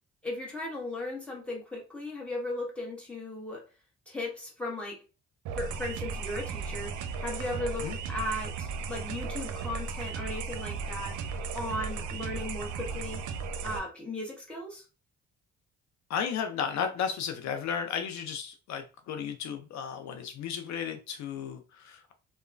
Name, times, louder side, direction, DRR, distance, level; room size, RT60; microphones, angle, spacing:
voice 1, 0.2-3.6 4.1-5.0 5.6-13.2 13.6-14.8, left 1 dB, 5° left, -3 dB, 1.1 m, -37 dB
sound 1, 5.4-13.8, right 5 dB, 80° right, 0.5 m, -36 dB
voice 2, 16.1-22.1, left 7 dB, 65° left, 6 dB, 0.5 m, -34 dB
2.9 x 2.1 x 2.4 m, 0.32 s
cardioid pair, 90°, 30 cm